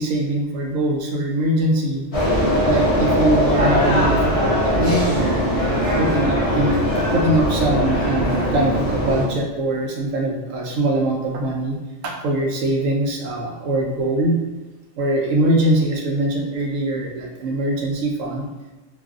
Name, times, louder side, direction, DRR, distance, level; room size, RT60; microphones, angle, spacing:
voice 1, 0.0-2.1 2.5-5.7 6.0-11.8 12.0-14.4 15.0-18.5, right 1 dB, 90° right, 0 dB, 1.0 m, -22 dB
sound 1, 2.1-9.2, equal, 35° left, 0.7 m, -20 dB
2.6 x 2.4 x 2.4 m, 1.2 s
omnidirectional pair, 1.3 m